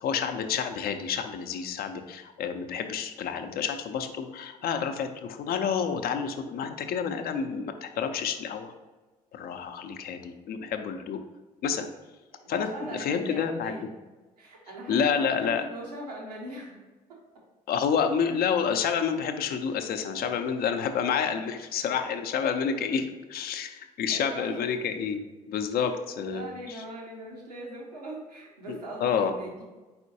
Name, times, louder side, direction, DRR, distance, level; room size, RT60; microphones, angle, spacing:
voice 1, 0.0-8.7 9.3-11.2 11.6-11.9 12.5-13.7 14.9-15.6 17.7-23.0 23.3-26.8 28.7-29.3, left 7 dB, 50° left, 7 dB, 0.6 m, -29 dB
voice 2, 7.2-7.5 9.5-9.7 12.3-13.9 14.4-16.8 22.7-22.8 24.1-24.6 25.9-29.6, right 1 dB, 85° right, -2 dB, 0.9 m, -41 dB
4.4 x 4.2 x 2.7 m, 1.2 s
figure-of-eight pair, 50°, 20 cm